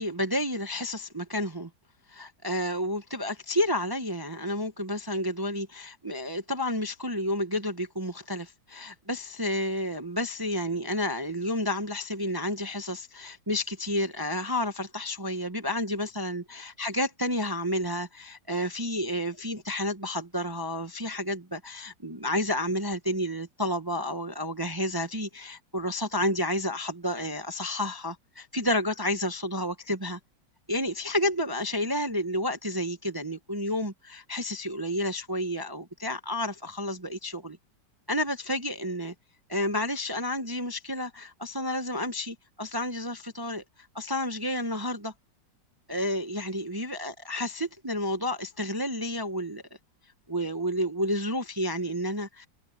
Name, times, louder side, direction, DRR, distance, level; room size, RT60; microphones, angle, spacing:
voice 1, 0.0-1.7 2.1-30.2 30.7-37.6 38.1-39.1 39.5-43.6 43.9-45.1 45.9-49.6 50.3-52.5, left 1 dB, 25° right, 0.5 m, -30 dB
omnidirectional pair, 2.0 m